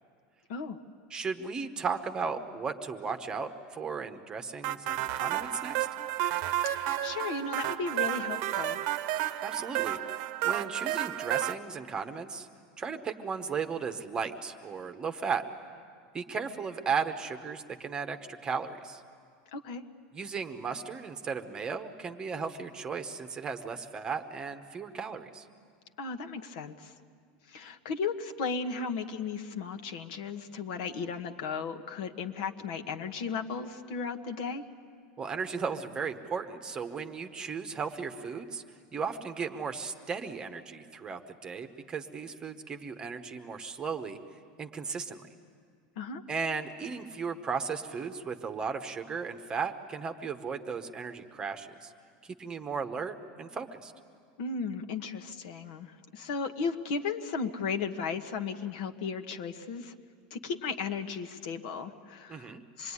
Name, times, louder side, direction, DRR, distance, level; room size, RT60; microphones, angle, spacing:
voice 1, 1.1-5.9 9.4-12.5 12.8-15.4 16.1-18.2 18.4-19.0 20.1-25.5 35.2-38.6 38.9-44.2 44.6-45.2 46.3-51.9 52.2-53.9 62.3-62.6, right 5 dB, 15° right, 7 dB, 1.1 m, -35 dB
sound 1, 4.6-11.5, right 14 dB, 50° right, 0.9 m, -31 dB
voice 2, 6.7-8.8 19.5-19.8 26.0-26.9 27.5-34.6 46.0-46.2 54.4-59.9 60.3-62.9, left 5 dB, 65° left, 7 dB, 1.4 m, -35 dB
26.0 x 21.5 x 9.8 m, 2.2 s
supercardioid pair, 155°, 5 cm